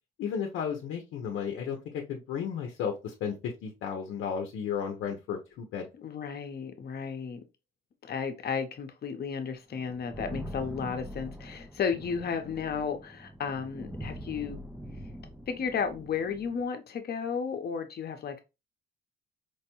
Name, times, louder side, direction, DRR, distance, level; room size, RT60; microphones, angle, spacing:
voice 1, 0.2-5.9, left 7 dB, 85° left, 0.7 m, -34 dB
voice 2, 5.9-7.4 8.1-14.6 15.5-18.4, left 6 dB, 55° left, 0.8 m, -33 dB
sound 1, 9.7-16.6, equal, 5° right, 0.4 m, -43 dB
4.7 x 2.2 x 2.9 m
cardioid pair, 90°, 20 cm